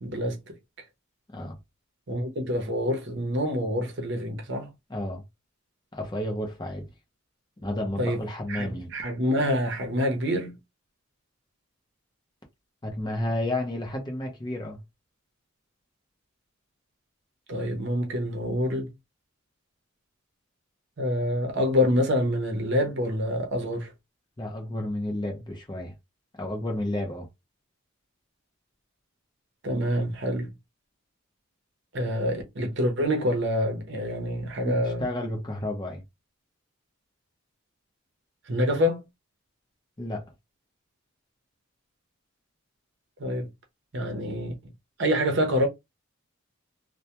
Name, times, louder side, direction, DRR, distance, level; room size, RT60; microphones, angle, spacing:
voice 1, 0.0-0.5 2.1-4.7 8.0-8.2 8.5-10.6 17.5-18.9 21.0-23.9 29.6-30.5 31.9-35.1 38.5-39.0 43.2-43.5 43.9-44.5 45.0-45.7, equal, 55° right, 0.7 m, -26 dB
voice 2, 4.9-5.2 5.9-6.9 7.6-8.9 12.8-14.8 24.4-25.9 26.4-27.3 34.6-36.0 40.0-40.3, left 1 dB, 20° left, 0.6 m, -31 dB
2.2 x 2.1 x 2.8 m
head